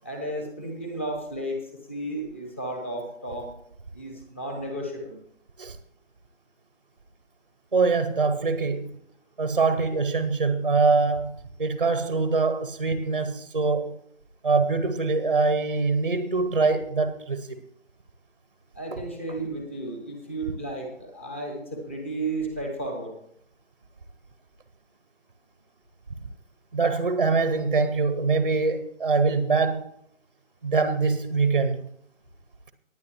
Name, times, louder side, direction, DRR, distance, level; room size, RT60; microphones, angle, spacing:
voice 1, 0.0-3.5 3.9-5.2 18.7-23.1, right 1 dB, 10° left, 0.8 m, -33 dB
voice 2, 7.7-8.9 9.4-11.3 11.6-14.0 14.4-17.6 26.7-29.9 30.6-31.8, right 4 dB, 35° right, 0.7 m, -23 dB
19.0 x 9.4 x 3.0 m
figure-of-eight pair, 155°, 39 cm